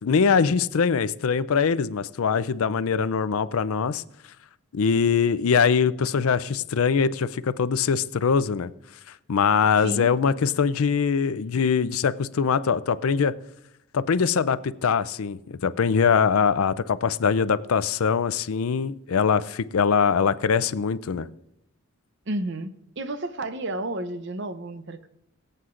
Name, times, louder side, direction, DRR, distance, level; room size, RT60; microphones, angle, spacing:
voice 1, 0.0-4.0 4.7-8.7 9.3-13.3 13.9-21.3, left 6 dB, 75° left, 15 dB, 0.5 m, -22 dB
voice 2, 9.8-10.1 22.3-25.1, right 1 dB, 55° right, 11 dB, 0.7 m, -31 dB
23.0 x 7.9 x 2.5 m, 0.81 s
head